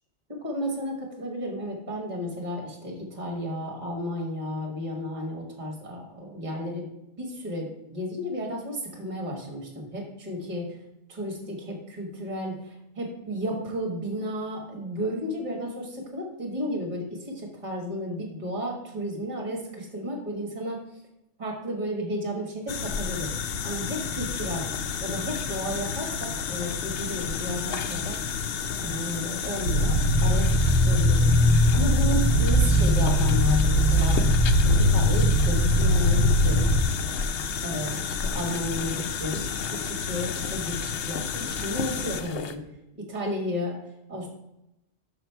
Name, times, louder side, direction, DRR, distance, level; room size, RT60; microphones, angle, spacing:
voice 1, 0.3-6.9 7.2-10.8 11.1-21.0 21.4-24.6 25.0-28.2 28.8-31.3 31.7-34.2 34.6-36.7 37.6-42.6 42.9-43.8 44.1-44.3, equal, 40° right, 0 dB, 1.5 m, -33 dB
sound 1, 22.7-42.6, left 6 dB, 75° left, 0.9 m, -31 dB
sound 2, 29.6-36.8, left 1 dB, 45° left, 1.1 m, -20 dB
6.3 x 6.1 x 4.5 m, 0.89 s
omnidirectional pair, 1.2 m